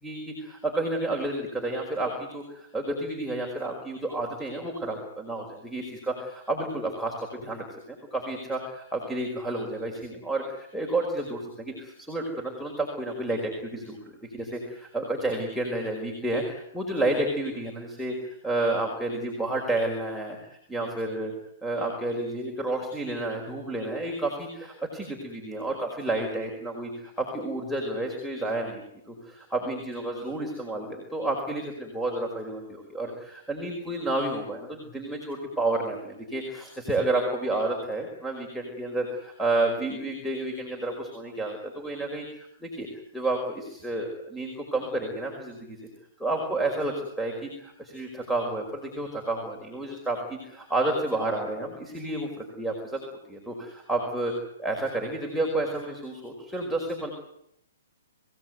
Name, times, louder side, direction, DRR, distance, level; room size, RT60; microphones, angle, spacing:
voice 1, 0.0-14.0 14.3-21.3 21.6-42.9 43.1-45.8 46.2-53.0 53.3-54.3 54.6-57.1, right 2 dB, ahead, 2 dB, 5.1 m, -30 dB
26.0 x 18.0 x 9.5 m, 0.76 s
hypercardioid pair, 130°, 0 cm